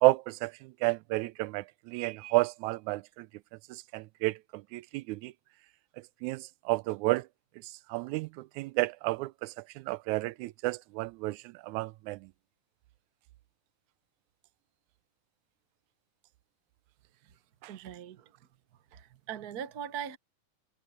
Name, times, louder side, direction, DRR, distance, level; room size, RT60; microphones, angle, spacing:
voice 1, 0.0-3.3 3.7-5.3 6.2-7.3 7.9-12.2, right 21 dB, 85° right, 2.0 m, -31 dB
voice 2, 17.7-18.3 18.9-20.2, right 9 dB, 55° right, 1.0 m, -40 dB
omnidirectional pair, 3.3 m